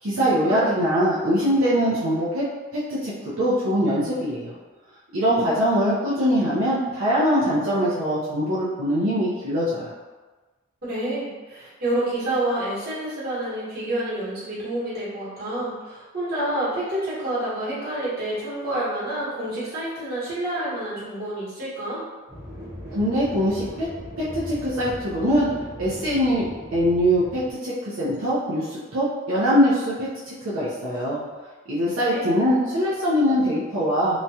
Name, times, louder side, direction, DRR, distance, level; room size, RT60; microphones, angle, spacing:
voice 1, 0.0-2.4 2.7-4.5 5.1-9.9 22.9-23.9 24.2-25.5 25.8-26.4 26.7-31.2 31.7-34.2, equal, 80° right, -9 dB, 0.6 m, -22 dB
voice 2, 10.8-22.0 32.0-32.3, right 1 dB, 50° right, -9 dB, 1.3 m, -28 dB
sound 1, 22.3-27.5, equal, 15° right, 0.9 m, -38 dB
3.0 x 2.3 x 2.7 m, 1.3 s
head